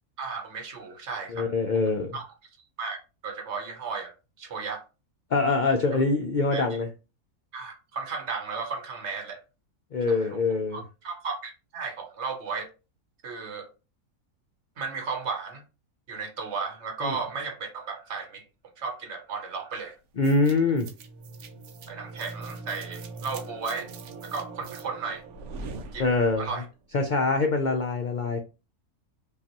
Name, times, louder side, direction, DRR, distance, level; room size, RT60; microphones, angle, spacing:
voice 1, 0.2-1.5 2.1-2.2 2.8-4.8 6.5-6.7 7.5-9.4 10.1-10.4 10.7-12.7 13.2-13.7 14.8-15.6 16.1-18.4 18.8-19.9 21.9-23.9 24.2-25.2 25.9-26.1 26.4-26.6, right 4 dB, 55° right, 1.1 m, -34 dB
voice 2, 1.3-2.1 5.3-6.9 9.9-10.8 17.0-17.2 20.2-20.9 26.0-26.5 26.9-28.4, left 3 dB, 90° left, 0.4 m, -24 dB
sound 1, 20.2-26.6, right 3 dB, 85° right, 1.2 m, -41 dB
5.4 x 2.4 x 2.9 m
omnidirectional pair, 1.5 m